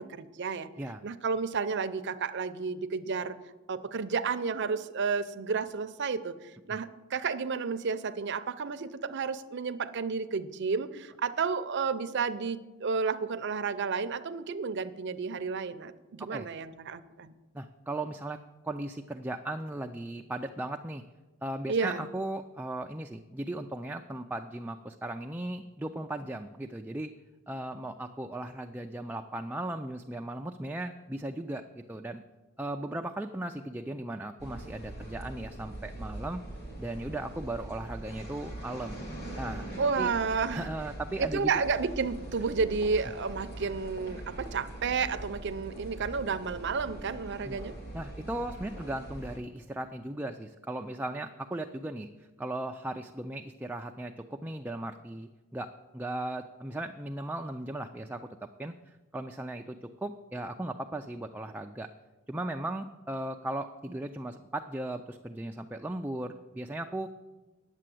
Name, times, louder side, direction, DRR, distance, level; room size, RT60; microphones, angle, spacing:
voice 1, 0.0-0.7 1.0-3.4 3.7-17.3 21.7-22.1 39.8-40.7 41.2-47.7, right 5 dB, 55° right, 11 dB, 0.6 m, -31 dB
voice 2, 17.5-21.0 21.4-27.1 27.5-32.2 32.6-36.4 36.8-39.0 39.4-39.7 40.0-40.1 40.5-41.6 47.4-47.6 47.9-61.9 62.3-67.1, right 1 dB, 10° right, 4 dB, 0.3 m, -37 dB
sound 1, 34.4-49.4, right 1 dB, 50° left, 2.4 m, -42 dB
9.9 x 7.5 x 7.7 m, 1.2 s
head